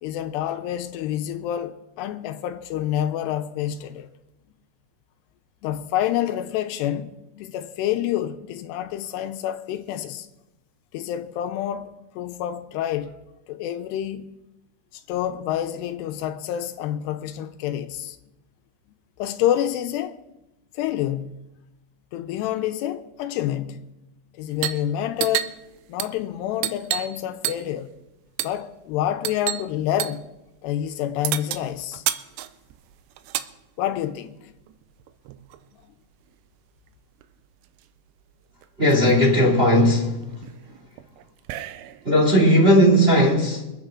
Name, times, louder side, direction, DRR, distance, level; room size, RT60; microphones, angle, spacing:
voice 1, 0.0-4.1 5.6-10.3 10.9-13.1 13.5-14.3 14.9-18.2 19.2-20.2 20.8-21.4 22.1-23.9 24.4-25.5 25.9-28.0 28.4-30.2 30.6-32.0 33.8-34.5, left 11 dB, 85° left, 2.9 m, -28 dB
sound 1, 24.5-24.9 25.1-27.2 27.4-27.8 28.4-28.6 29.2-29.7 30.0-30.2 31.2-33.5 34.6-35.6 36.9-37.0 37.2-37.8 38.3-38.4 38.6-39.1 39.7-42.1, right 13 dB, 90° right, 2.8 m, -31 dB
voice 2, 38.8-40.5 42.0-43.6, equal, 20° right, 2.1 m, -17 dB
24.5 x 9.1 x 3.7 m
omnidirectional pair, 4.7 m